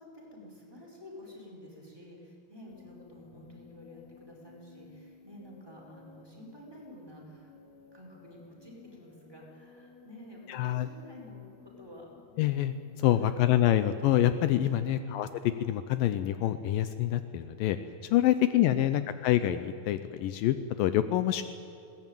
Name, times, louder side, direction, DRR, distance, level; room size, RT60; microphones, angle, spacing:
voice 1, 0.0-7.5 7.9-12.1 13.1-13.6 14.8-15.2 18.4-19.4, left 1 dB, 5° right, -3 dB, 5.1 m, -50 dB
sound 1, 2.7-14.7, left 3 dB, 55° left, 3.8 m, -56 dB
voice 2, 10.5-10.9 12.4-15.3 15.6-17.8 18.1-21.4, left 12 dB, 80° left, 11 dB, 2.4 m, -26 dB
21.5 x 18.0 x 9.1 m, 2.8 s
omnidirectional pair, 4.1 m